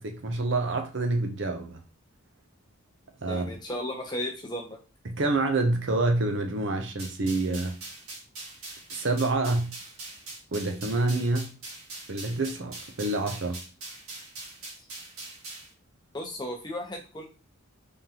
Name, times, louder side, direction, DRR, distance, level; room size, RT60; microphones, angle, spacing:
voice 1, 0.0-1.8 3.2-3.5 5.1-7.8 8.9-9.7 10.5-11.5 12.1-13.6, right 2 dB, 55° right, 0.7 m, -27 dB
voice 2, 3.3-4.8 16.1-17.2, left 1 dB, 20° left, 0.8 m, -35 dB
sound 1, 7.0-15.7, right 2 dB, 85° right, 1.7 m, -42 dB
3.7 x 3.6 x 2.9 m
head